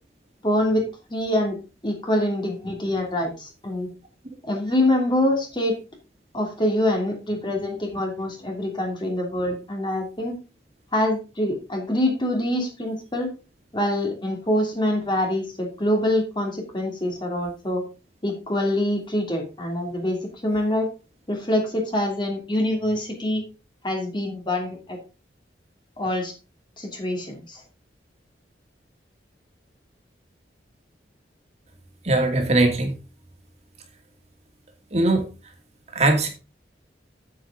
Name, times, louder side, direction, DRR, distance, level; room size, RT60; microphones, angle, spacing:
voice 1, 0.4-0.8 1.1-1.6 1.8-3.9 4.4-5.8 6.3-10.3 10.9-13.3 13.7-17.8 18.2-20.2 20.4-20.9 21.3-23.4 23.8-25.0 26.0-26.3 26.8-27.6, left 1 dB, 25° left, 1 dB, 2.8 m, -25 dB
voice 2, 32.0-32.9 34.9-35.3 35.9-36.3, right 2 dB, 35° right, 4 dB, 2.4 m, -20 dB
8.8 x 8.3 x 3.8 m, 0.30 s
head